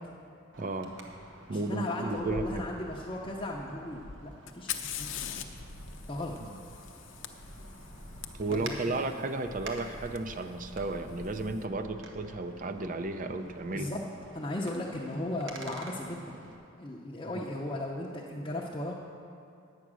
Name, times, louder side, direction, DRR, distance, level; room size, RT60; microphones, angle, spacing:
Wind, 0.5-16.6, right 1 dB, 75° right, 1.2 m, -47 dB
voice 1, 0.6-0.9 1.5-2.6 6.5-6.6 8.3-13.9, right 2 dB, 40° right, 7 dB, 0.6 m, -33 dB
voice 2, 1.5-5.5 6.1-6.3 8.5-9.0 13.7-14.0 14.3-16.5 16.8-19.0, left 1 dB, 25° left, -4 dB, 0.6 m, -36 dB
Fire, 4.5-8.3 10.2-10.3 11.1-11.5, left 11 dB, 70° left, 0.6 m, -41 dB
9.7 x 8.1 x 6.2 m, 2.5 s
head